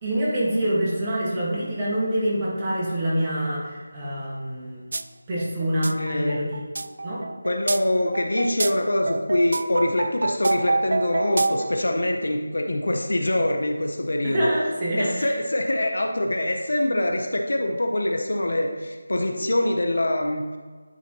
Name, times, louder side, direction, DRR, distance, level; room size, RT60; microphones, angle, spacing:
voice 1, 0.0-4.8 5.3-6.6 7.0-7.2 14.2-15.4, right 1 dB, 20° right, -7 dB, 1.7 m, -26 dB
sound 1, 4.9-5.0 5.4-11.8, right 3 dB, 55° right, 0.3 m, -27 dB
voice 2, 5.9-6.4 7.4-14.5 15.0-20.5, left 1 dB, 70° left, 3 dB, 0.8 m, -24 dB
9.8 x 4.2 x 3.1 m, 1.4 s
figure-of-eight pair, 165°, 0 cm